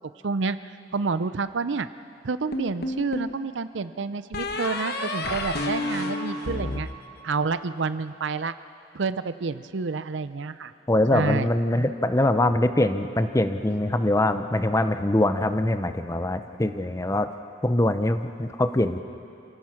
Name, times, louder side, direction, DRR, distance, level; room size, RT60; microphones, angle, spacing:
voice 1, 0.2-0.6 0.9-1.9 2.2-6.9 7.2-8.5 8.9-10.7 11.1-11.5, right 4 dB, 70° right, 13 dB, 0.6 m, -28 dB
sound 1, 2.5-3.4 4.3-7.7, left 2 dB, 55° left, 1.3 m, -30 dB
voice 2, 10.9-17.3 17.6-19.0, left 1 dB, 15° left, 9 dB, 0.7 m, -23 dB
28.5 x 17.0 x 5.9 m, 2.7 s
head